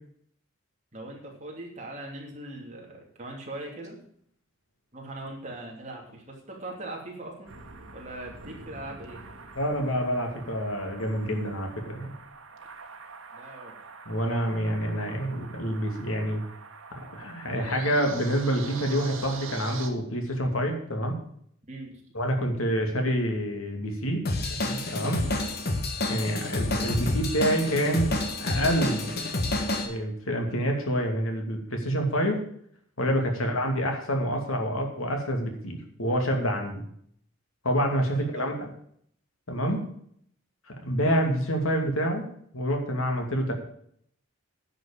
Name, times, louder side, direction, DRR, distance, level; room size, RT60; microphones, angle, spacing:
voice 1, 0.9-4.0 4.9-7.5 7.9-9.2 13.3-13.8 21.7-21.9 25.2-25.4 33.3-33.5 38.1-38.5, right 1 dB, 35° right, -1 dB, 2.9 m, -40 dB
sound 1, 7.5-19.9, right 4 dB, 80° right, 1.6 m, -44 dB
voice 2, 9.5-12.1 14.1-16.4 17.1-21.1 22.1-24.2 24.6-25.2 26.1-28.1 28.4-29.1 29.8-32.4 33.0-36.8 37.6-38.5 39.5-39.8 40.8-42.3 42.5-43.5, equal, 80° left, 3 dB, 2.7 m, -27 dB
Drum kit / Drum, 24.2-29.9, left 2 dB, 45° left, 1.5 m, -29 dB
10.5 x 6.5 x 8.8 m, 0.65 s
head